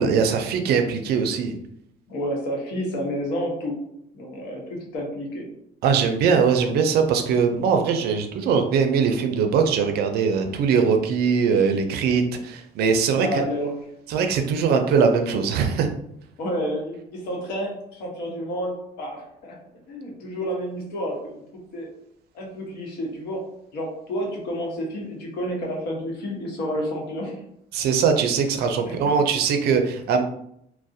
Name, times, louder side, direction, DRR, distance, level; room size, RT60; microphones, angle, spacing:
voice 1, 0.0-1.5 5.8-13.4 14.1-15.9 27.7-30.2, right 6 dB, 70° right, 6 dB, 0.4 m, -21 dB
voice 2, 2.1-3.8 4.1-5.5 13.2-13.7 16.4-19.5 19.9-21.4 21.7-21.9 22.3-23.4 23.7-27.4 28.8-29.2, equal, 80° left, -1 dB, 0.8 m, -30 dB
2.3 x 2.0 x 2.6 m, 0.73 s
cardioid pair, 110°, 17 cm